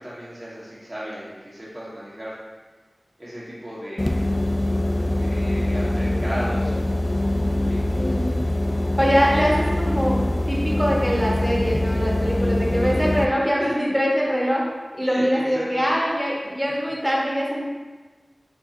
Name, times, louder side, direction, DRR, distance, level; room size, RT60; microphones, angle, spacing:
voice 1, 0.0-2.3 3.2-4.2 5.1-8.1 13.6-13.7 15.1-15.9, equal, 35° right, -9 dB, 1.5 m, -35 dB
sound 1, 4.0-13.2, left 1 dB, 40° left, 0.4 m, -23 dB
voice 2, 8.0-8.3 9.0-10.2 10.5-14.6 15.0-17.6, equal, 10° right, -4 dB, 1.2 m, -23 dB
4.4 x 4.1 x 2.7 m, 1.3 s
wide cardioid pair, 40°, 0 cm